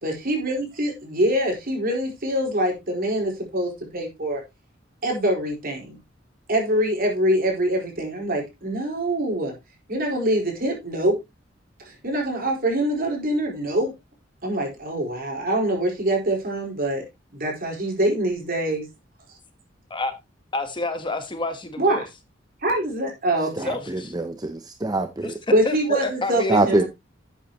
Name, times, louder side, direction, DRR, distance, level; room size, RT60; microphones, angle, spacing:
voice 1, 0.0-4.4 5.0-6.0 6.5-9.5 9.9-11.2 11.8-13.9 14.4-17.0 17.3-18.8 21.8-22.0 22.6-23.7 25.5-26.8, right 1 dB, 50° right, 4.7 m, -24 dB
voice 2, 20.5-22.0 23.6-24.1 25.2-25.3 25.6-26.8, left 2 dB, 25° left, 1.3 m, -29 dB
voice 3, 23.6-25.3 26.5-26.8, right 2 dB, 20° right, 0.7 m, -24 dB
12.0 x 8.3 x 3.0 m
head